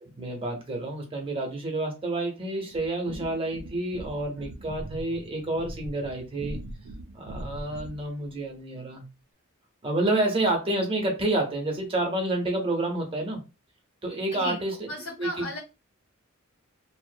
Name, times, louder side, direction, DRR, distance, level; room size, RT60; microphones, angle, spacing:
voice 1, 0.0-6.6 7.1-9.0 9.8-13.4 14.0-14.9 15.2-15.5, right 2 dB, 25° right, 0.7 m, -29 dB
sound 1, 2.7-8.1, right 1 dB, 70° right, 0.4 m, -41 dB
voice 2, 14.3-14.6 14.9-15.6, left 2 dB, 80° left, 0.8 m, -35 dB
2.5 x 2.0 x 2.6 m
head